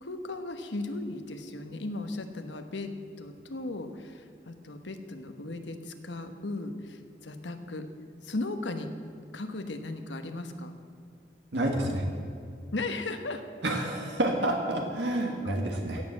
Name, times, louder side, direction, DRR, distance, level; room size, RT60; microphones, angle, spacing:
voice 1, 0.0-2.9 3.2-7.9 8.2-8.9 9.3-10.7 12.7-13.4 15.4-15.5, left 2 dB, 85° left, 7 dB, 1.2 m, -36 dB
voice 2, 11.5-12.1 13.6-16.0, right 1 dB, 80° right, 2 dB, 1.7 m, -29 dB
16.0 x 7.7 x 7.3 m, 2.5 s
head